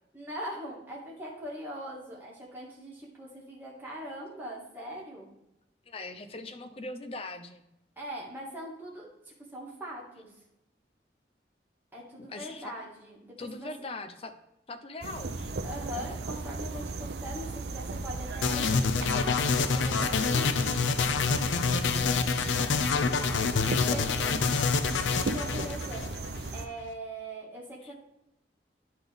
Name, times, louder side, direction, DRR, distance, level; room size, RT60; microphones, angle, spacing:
voice 1, 0.1-5.3 8.0-10.3 11.9-13.7 15.6-20.6 23.2-23.4 23.9-24.3 25.2-28.0, equal, 10° right, -4 dB, 1.8 m, -41 dB
voice 2, 5.9-7.6 12.3-12.7 13.4-14.3 14.7-15.5 21.9-22.8 23.9-24.9 27.8-27.9, left 2 dB, 30° left, 8 dB, 0.6 m, -41 dB
sound 1, 15.0-26.7, right 3 dB, 60° right, 0.5 m, -36 dB
sound 2, 18.4-26.5, left 5 dB, 80° left, 0.5 m, -27 dB
10.5 x 4.0 x 3.4 m, 0.89 s
head